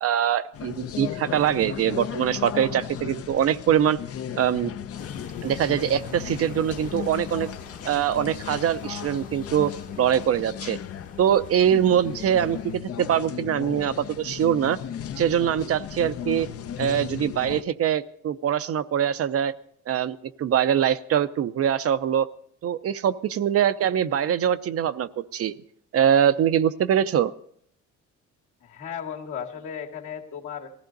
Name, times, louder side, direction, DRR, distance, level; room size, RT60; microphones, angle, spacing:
voice 1, 0.0-4.0 4.4-4.7 5.4-7.5 7.8-9.7 10.0-10.8 11.2-14.8 15.2-16.5 16.8-19.5 19.9-22.3 22.6-25.5 25.9-27.3, right 9 dB, 50° right, 12 dB, 0.6 m, -23 dB
sound 1, 0.5-17.6, left 9 dB, 50° left, 0.7 m, -36 dB
sound 2, 5.0-12.7, left 4 dB, 25° left, 1.0 m, -45 dB
voice 2, 28.6-30.7, left 8 dB, 70° left, 0 dB, 2.2 m, -35 dB
19.0 x 14.5 x 4.0 m, 0.66 s
cardioid pair, 125°, 30 cm